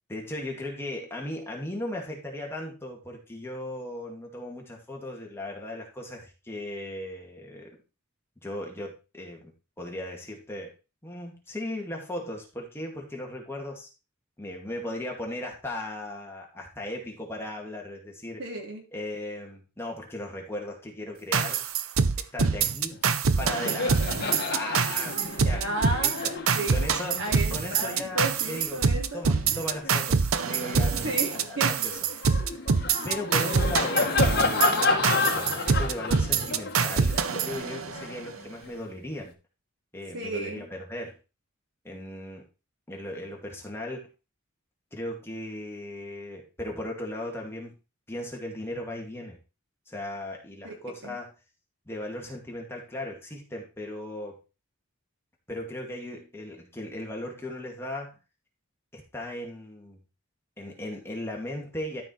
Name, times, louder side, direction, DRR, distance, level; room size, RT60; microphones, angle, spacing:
voice 1, 0.1-7.8 8.4-10.7 11.0-13.9 14.4-18.4 18.9-21.6 22.2-23.0 23.4-24.0 24.5-25.7 26.0-26.3 26.7-27.2 27.5-28.8 29.1-32.0 33.0-39.3 39.9-41.2 41.8-42.5 42.9-44.1 44.9-47.7 48.1-49.4 49.9-51.3 51.9-54.4 55.5-58.2 58.9-60.0 60.6-62.0, left 1 dB, 10° left, -1 dB, 2.3 m, -37 dB
voice 2, 18.4-18.8 25.6-26.9 27.2-29.2 30.9-31.7 40.1-40.7 50.6-50.7 51.0-51.2, right 2 dB, 65° right, 0 dB, 3.2 m, -33 dB
sound 1, 21.3-38.2, right 5 dB, 90° right, 0.7 m, -25 dB
Laughter, 22.9-23.1 23.3-30.1 30.6-38.8, left 3 dB, 50° left, 1.7 m, -31 dB
12.5 x 5.1 x 4.4 m, 0.30 s
head